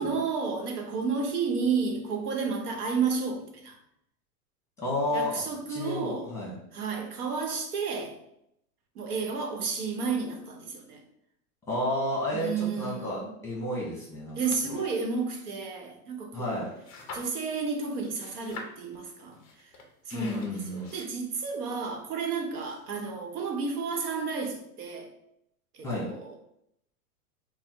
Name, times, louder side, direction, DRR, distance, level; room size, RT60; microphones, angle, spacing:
voice 1, 0.0-3.8 5.1-6.3 6.7-8.2 8.9-11.0 12.3-13.3 14.3-16.7 17.1-19.4 20.1-25.1 25.8-26.3, right 5 dB, 85° right, 1.0 m, -31 dB
voice 2, 4.8-5.4 5.7-6.5 11.7-14.4 14.7-14.8 16.3-16.7 20.1-20.9 25.8-26.1, left 1 dB, 5° left, 0.9 m, -31 dB
sound 1, 16.6-17.6 17.9-23.1, left 3 dB, 30° left, 0.3 m, -46 dB
3.6 x 2.1 x 4.3 m
supercardioid pair, 155°, 44 cm